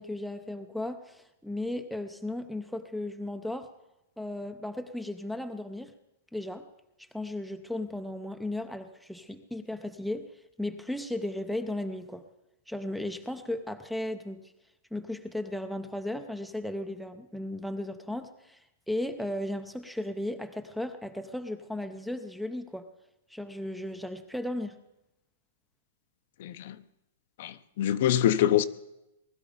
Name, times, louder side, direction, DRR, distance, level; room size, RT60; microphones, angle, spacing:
voice 1, 0.0-3.7 4.2-5.9 6.3-6.7 7.1-10.3 10.6-12.2 12.7-14.5 14.9-18.6 18.9-22.9 23.3-24.8, left 1 dB, ahead, 0.6 m, -35 dB
voice 2, 26.4-26.7 27.4-28.6, left 11 dB, 50° left, 0.7 m, -25 dB
20.0 x 12.5 x 5.1 m
supercardioid pair, 170°, 0 cm